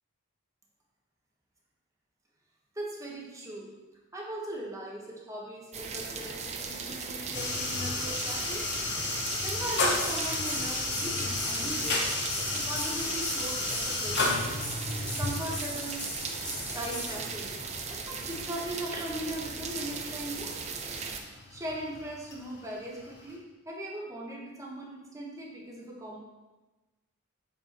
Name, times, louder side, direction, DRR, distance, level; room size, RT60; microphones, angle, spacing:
voice 1, 2.7-3.7 4.1-8.6 9.4-12.0 12.5-14.4 15.1-16.1 16.7-20.5 21.5-26.2, right 1 dB, 15° right, -2 dB, 1.3 m, -39 dB
sound 1, 5.7-21.2, right 5 dB, 30° right, 0.6 m, -38 dB
sound 2, 7.3-23.3, left 2 dB, 55° left, 1.2 m, -34 dB
sound 3, 9.8-17.1, left 1 dB, 20° left, 1.3 m, -39 dB
7.5 x 4.6 x 4.4 m, 1.1 s
head